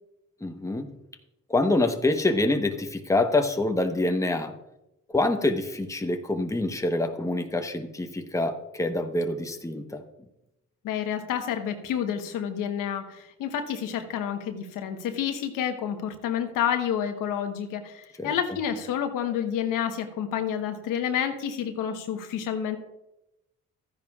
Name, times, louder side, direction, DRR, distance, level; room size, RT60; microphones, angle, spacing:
voice 1, 0.4-0.9 1.5-4.5 5.1-10.0 18.2-18.3, left 2 dB, 10° left, 6 dB, 1.0 m, -26 dB
voice 2, 10.8-22.8, left 9 dB, 80° left, 6 dB, 1.2 m, -29 dB
13.5 x 10.0 x 2.4 m, 0.91 s
supercardioid pair, 70°, 32 cm